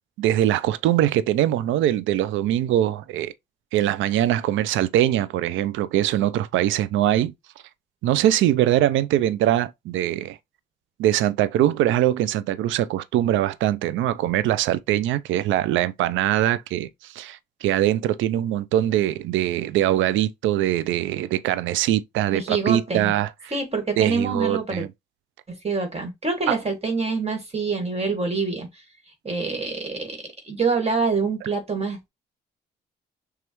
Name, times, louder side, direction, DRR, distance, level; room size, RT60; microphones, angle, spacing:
voice 1, 0.2-3.3 3.7-7.3 8.0-10.4 11.0-23.3 24.0-24.9 26.5-26.6, right 12 dB, 85° right, 0.4 m, -22 dB
voice 2, 22.3-23.1 23.5-24.8 25.5-28.7 29.2-30.2 30.4-32.0, right 4 dB, 30° right, 1.8 m, -26 dB
6.1 x 2.4 x 3.0 m
supercardioid pair, 60°, 20 cm